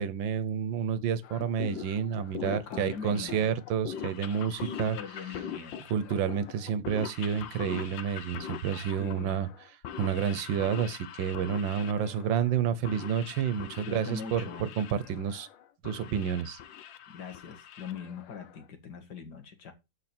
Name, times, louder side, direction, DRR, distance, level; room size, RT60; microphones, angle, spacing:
voice 1, 0.0-5.0 5.9-9.5 10.0-15.5 15.8-16.6, right 8 dB, 90° right, 1.6 m, -30 dB
sound 1, 1.2-18.6, left 9 dB, 85° left, 1.6 m, -43 dB
voice 2, 2.4-3.5 4.5-5.8 9.0-9.4 13.9-14.7 17.1-19.7, left 6 dB, 65° left, 2.2 m, -41 dB
12.5 x 4.9 x 4.4 m
omnidirectional pair, 2.0 m